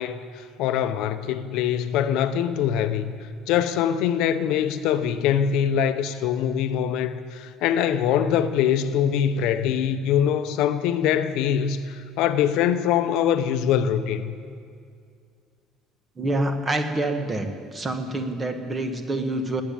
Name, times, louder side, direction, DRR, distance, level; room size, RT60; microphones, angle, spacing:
voice 1, 0.0-3.1 3.5-14.3, left 9 dB, 70° left, 0.8 m, -23 dB
voice 2, 16.2-17.5 17.7-19.6, right 2 dB, 20° right, 1.5 m, -26 dB
19.5 x 8.5 x 8.6 m
cardioid pair, 140°, 0 cm